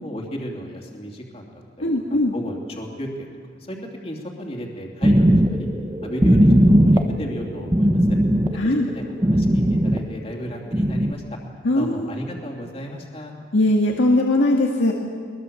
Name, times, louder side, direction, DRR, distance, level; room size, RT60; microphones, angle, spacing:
voice 1, 0.0-3.3 3.7-3.8 4.0-5.7 6.0-8.2 8.9-11.4 11.7-13.3, equal, 30° left, 0 dB, 2.9 m, -34 dB
voice 2, 1.8-2.3 8.6-8.9 11.6-12.1 13.5-14.9, left 1 dB, 90° left, 0 dB, 1.8 m, -19 dB
sound 1, 5.0-10.4 10.7-11.1, equal, 20° right, 0.9 m, -18 dB
22.0 x 21.5 x 7.1 m, 2.2 s
head